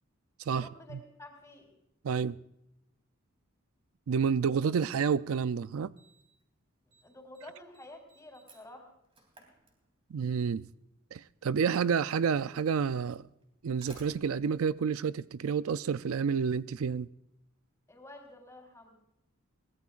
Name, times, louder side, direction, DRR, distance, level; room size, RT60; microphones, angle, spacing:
voice 1, 0.5-1.7 7.0-8.9 17.9-19.0, left 1 dB, 15° left, 3.8 m, -50 dB
voice 2, 2.0-2.4 4.1-5.9 10.1-10.7 11.1-13.2 13.6-17.1, right 6 dB, 75° right, 0.4 m, -29 dB
Slam, 6.0-6.4 6.7-7.0 7.3-10.3 11.4-11.5 12.4-12.5 13.4-15.8, right 2 dB, 25° right, 3.0 m, -58 dB
22.5 x 18.0 x 2.5 m
head